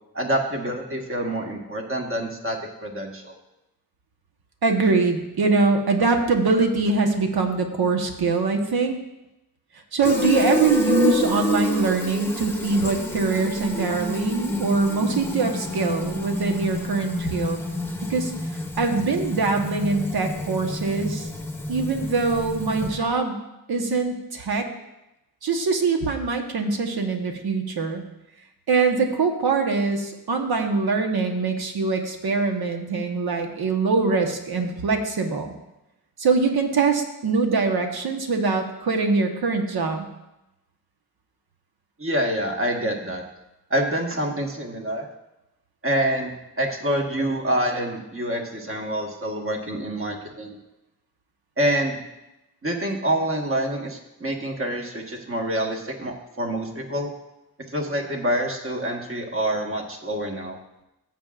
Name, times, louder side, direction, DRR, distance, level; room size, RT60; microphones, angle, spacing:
voice 1, 0.1-3.4 42.0-43.2 43.7-45.1 45.8-50.6 51.6-52.0 52.6-57.1 57.7-60.6, right 1 dB, 35° right, 1 dB, 1.6 m, -26 dB
voice 2, 4.6-9.0 9.9-17.6 18.0-18.3 18.8-21.3 21.7-23.4 23.7-24.7 25.4-28.0 28.7-35.5 36.2-40.1, right 4 dB, 75° right, 4 dB, 1.3 m, -23 dB
Fill (with liquid), 10.0-23.1, left 1 dB, 5° left, 0.9 m, -28 dB
15.5 x 7.5 x 2.5 m, 0.93 s
wide cardioid pair, 95°, 38 cm